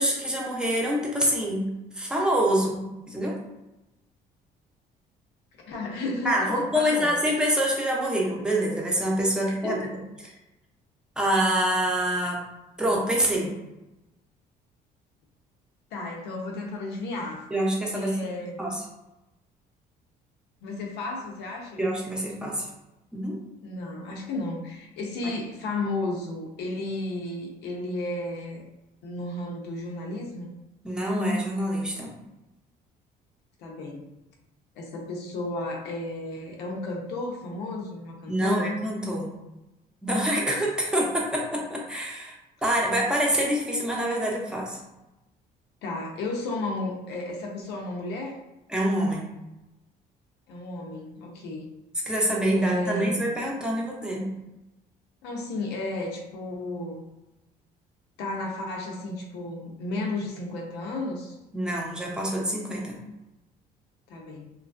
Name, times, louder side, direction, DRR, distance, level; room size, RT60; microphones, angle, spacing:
voice 1, 0.0-1.7 1.9-3.4 6.2-9.8 11.2-12.4 12.8-13.5 17.5-18.2 18.6-18.8 21.8-22.7 23.1-23.4 25.2-25.3 30.8-32.1 38.3-39.3 40.0-42.3 42.6-44.8 48.7-49.3 52.1-54.3 61.5-63.0, equal, 5° right, -3 dB, 0.7 m, -26 dB
voice 2, 5.7-7.2 9.5-9.9 10.2-10.4 15.9-17.4 17.9-18.6 20.6-21.8 23.6-28.6 29.0-30.5 33.6-34.1 34.8-38.7 45.8-48.4 50.5-51.7 52.5-53.2 55.2-57.1 58.2-61.4 64.1-64.5, left 2 dB, 85° left, 0 dB, 0.6 m, -33 dB
3.0 x 2.3 x 2.5 m, 0.96 s
cardioid pair, 110°, 17 cm